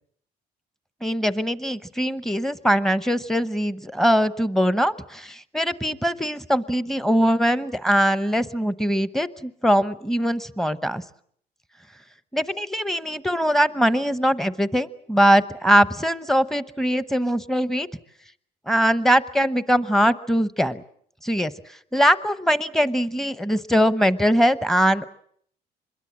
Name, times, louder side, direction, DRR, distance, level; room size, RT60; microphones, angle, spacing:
voice 1, 1.0-11.0 12.3-17.9 18.7-20.8 21.2-25.1, equal, ahead, 14 dB, 0.9 m, -22 dB
25.5 x 22.0 x 7.5 m, 0.65 s
cardioid pair, 110°, 17 cm